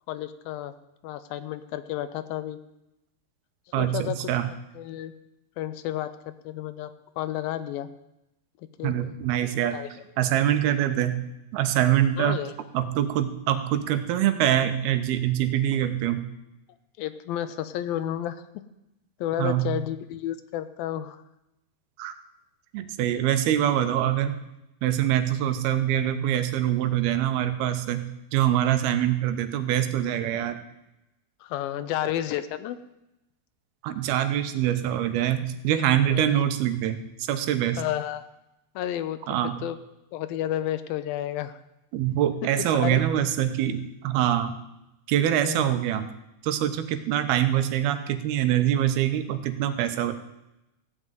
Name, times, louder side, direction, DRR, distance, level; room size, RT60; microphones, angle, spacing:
voice 1, 0.1-0.7 1.0-2.6 3.8-4.3 4.8-5.1 5.6-6.9 7.2-7.9 8.8-9.2 9.7-9.9 12.2-12.6 17.0-18.4 19.2-21.2 31.4-32.8 36.1-36.4 37.8-38.2 38.8-39.8 40.1-41.6 42.6-43.0 45.4-45.7, left 12 dB, 80° left, 12 dB, 2.4 m, -31 dB
voice 2, 3.7-4.5 8.8-9.8 10.2-11.2 11.5-12.4 12.7-16.2 19.4-19.7 22.0-22.1 22.7-24.3 24.8-28.1 28.3-30.6 33.8-37.8 39.3-39.6 41.9-44.6 45.1-46.1 46.4-50.1, right 11 dB, 85° right, 10 dB, 2.9 m, -24 dB
15.5 x 6.4 x 9.1 m, 0.90 s
omnidirectional pair, 4.4 m